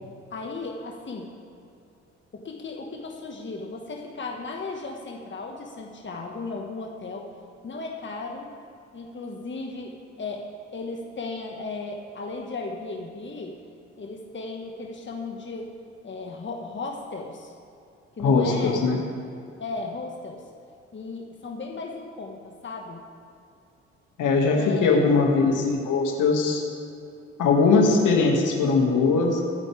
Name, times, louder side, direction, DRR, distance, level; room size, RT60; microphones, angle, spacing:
voice 1, 0.3-1.3 2.3-7.3 7.6-8.5 8.9-10.4 10.7-13.5 14.0-15.7 16.0-17.5 18.2-18.8 19.6-20.4 20.9-23.0 24.5-25.0, left 3 dB, 35° left, 1 dB, 1.7 m, -35 dB
voice 2, 18.2-19.0 24.2-26.6 27.4-29.4, left 4 dB, 65° left, 0 dB, 2.2 m, -20 dB
23.5 x 9.1 x 3.5 m, 2.5 s
hypercardioid pair, 45°, 34 cm